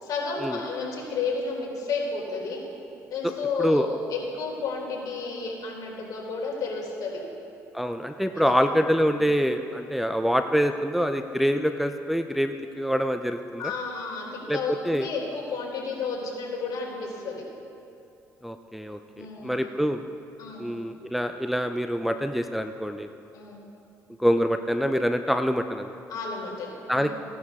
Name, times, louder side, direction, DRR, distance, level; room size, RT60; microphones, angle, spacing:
voice 1, 0.0-2.6 3.1-7.2 8.4-8.5 9.1-9.2 13.6-17.4 19.2-19.5 20.4-20.7 23.3-23.6 26.1-27.1, left 4 dB, 65° left, -2 dB, 3.6 m, -32 dB
voice 2, 7.7-13.7 14.5-14.6 14.8-15.1 18.4-20.0 20.6-23.1 24.2-26.0 26.9-27.1, equal, ahead, 7 dB, 0.5 m, -25 dB
16.5 x 11.5 x 3.6 m, 2.7 s
supercardioid pair, 75°, 7 cm